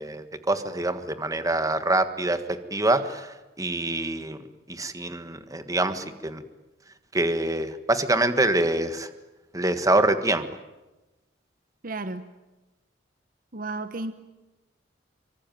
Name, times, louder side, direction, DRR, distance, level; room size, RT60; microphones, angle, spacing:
voice 1, 0.0-4.4 4.7-6.4 7.1-9.1 9.5-10.5, right 2 dB, 20° right, 9 dB, 1.6 m, -25 dB
voice 2, 11.8-12.3 13.5-14.1, right 2 dB, 50° right, 11 dB, 1.2 m, -33 dB
25.5 x 24.5 x 9.2 m, 1.1 s
head